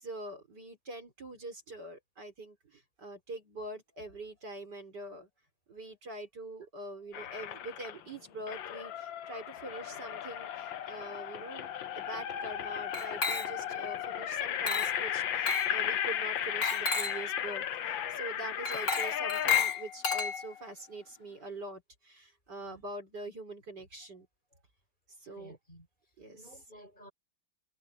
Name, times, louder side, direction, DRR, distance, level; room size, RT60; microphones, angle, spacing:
voice 1, 0.0-5.3 5.7-11.7 11.9-24.3 25.2-25.6 26.2-26.4, right 2 dB, 55° right, 4.8 m, -44 dB
sound 1, 7.1-8.0 8.5-19.6, left 10 dB, 70° left, 1.7 m, -35 dB
Glass, 12.9-13.8 14.7-15.0 15.5-15.8 16.6-17.3 18.6-20.7, left 6 dB, 45° left, 4.1 m, -32 dB
voice 2, 25.3-25.9 26.3-27.1, equal, 20° left, 7.5 m, -54 dB
omnidirectional pair, 2.2 m